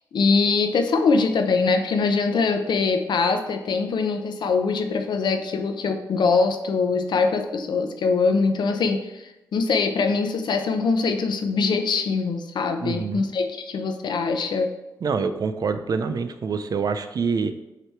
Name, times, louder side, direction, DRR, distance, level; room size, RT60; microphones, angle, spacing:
voice 1, 0.1-14.7, left 4 dB, 70° left, 6 dB, 0.7 m, -23 dB
voice 2, 12.8-13.2 15.0-17.5, right 5 dB, 55° right, 10 dB, 0.5 m, -26 dB
8.0 x 2.9 x 4.6 m, 0.95 s
cardioid pair, 80°, 8 cm